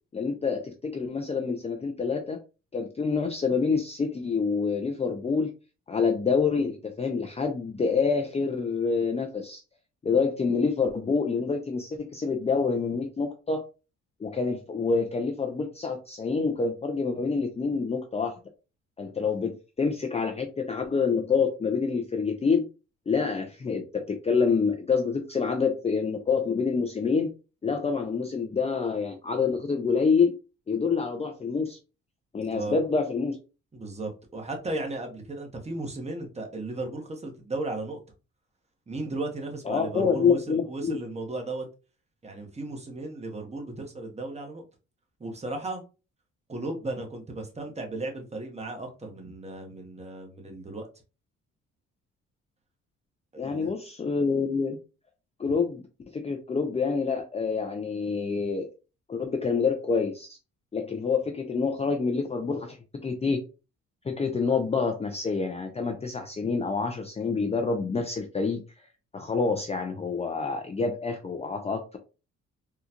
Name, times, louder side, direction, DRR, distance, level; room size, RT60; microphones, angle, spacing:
voice 1, 0.1-2.4 2.7-5.5 5.9-9.6 10.0-13.6 14.2-18.4 19.0-22.7 23.1-27.3 27.6-30.3 30.7-31.8 32.3-33.4 39.7-41.0 53.4-54.8 55.4-55.8 56.1-58.7 59.1-60.4 60.7-62.8 63.0-63.4 64.0-68.6 69.1-72.0, left 5 dB, 20° left, 3 dB, 0.5 m, -27 dB
voice 2, 33.7-38.0 38.9-41.6 42.2-44.6 45.2-45.8 46.5-50.9 53.3-53.7, right 2 dB, 20° right, 2 dB, 1.0 m, -35 dB
3.8 x 2.3 x 2.8 m, 0.31 s
cardioid pair, 90°, 30 cm